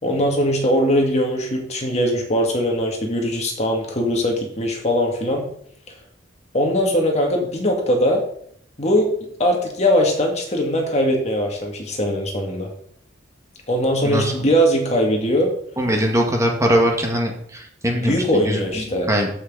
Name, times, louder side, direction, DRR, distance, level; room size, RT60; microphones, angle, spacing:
voice 1, 0.0-5.4 6.5-8.2 8.8-9.1 9.4-12.7 13.7-15.5 17.9-19.1, equal, 40° left, 1 dB, 2.2 m, -20 dB
voice 2, 15.8-19.3, equal, 15° right, 1 dB, 1.6 m, -21 dB
13.5 x 6.1 x 3.9 m, 0.66 s
head